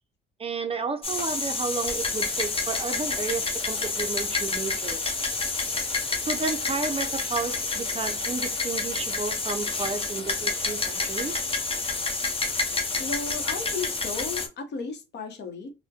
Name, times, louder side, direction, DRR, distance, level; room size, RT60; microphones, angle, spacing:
voice 1, 0.4-5.1 6.3-11.4, right 4 dB, 30° right, 0.4 m, -32 dB
Microchip Packaging, 1.0-14.5, left 3 dB, 30° left, 0.7 m, -29 dB
voice 2, 13.0-15.7, left 4 dB, 60° left, 0.8 m, -34 dB
3.4 x 2.1 x 2.7 m
cardioid pair, 90°, 20 cm